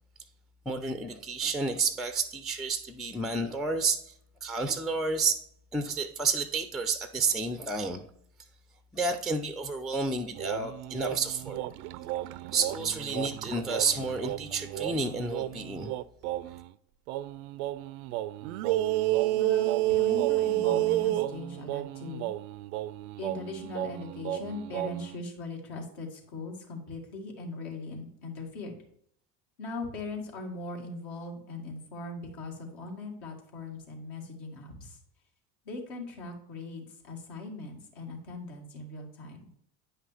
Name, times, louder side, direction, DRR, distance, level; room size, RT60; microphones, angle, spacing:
voice 1, 0.7-4.1 4.4-5.4 5.7-8.0 8.9-11.6 12.5-15.9, right 4 dB, ahead, 0.5 m, -30 dB
sound 1, 10.3-16.7 17.1-25.1, right 15 dB, 70° right, 0.5 m, -31 dB
voice 2, 19.4-22.3 23.2-28.8 29.6-35.0 35.6-39.5, left 3 dB, 65° left, 2.4 m, -40 dB
9.3 x 5.6 x 3.4 m
hypercardioid pair, 70°, 45 cm